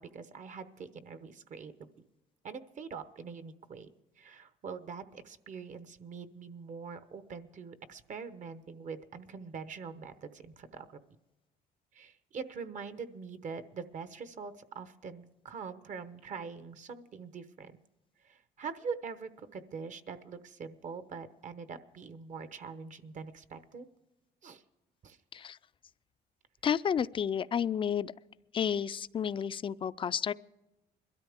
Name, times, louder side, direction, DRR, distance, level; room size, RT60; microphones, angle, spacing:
voice 1, 0.0-1.7 2.4-3.9 4.2-11.0 11.9-17.7 18.2-23.8 24.4-24.6 25.0-25.2, right 5 dB, 45° right, 12 dB, 1.0 m, -43 dB
voice 2, 26.6-28.1 28.5-30.3, left 8 dB, 30° left, 16 dB, 0.4 m, -31 dB
21.5 x 13.0 x 3.6 m, 1.0 s
cardioid pair, 110°, 17 cm